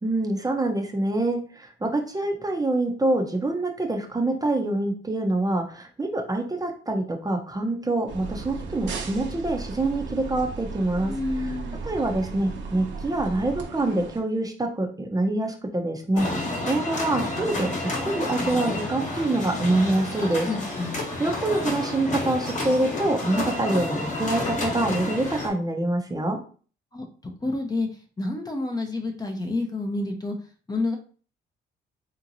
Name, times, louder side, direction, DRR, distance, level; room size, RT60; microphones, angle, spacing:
voice 1, 0.0-11.1 11.4-11.6 11.8-20.9 21.2-26.4, right 2 dB, 20° right, 3 dB, 0.7 m, -26 dB
sound 1, 8.1-14.2, right 4 dB, 65° right, 1.0 m, -35 dB
voice 2, 11.1-11.8 20.5-21.0 26.9-27.9 28.2-30.4 30.7-31.0, left 2 dB, 20° left, 3 dB, 0.7 m, -29 dB
sound 2, 16.2-25.5, left 2 dB, 40° left, 1.2 m, -30 dB
3.7 x 2.9 x 2.6 m, 0.41 s
cardioid pair, 90°, 20 cm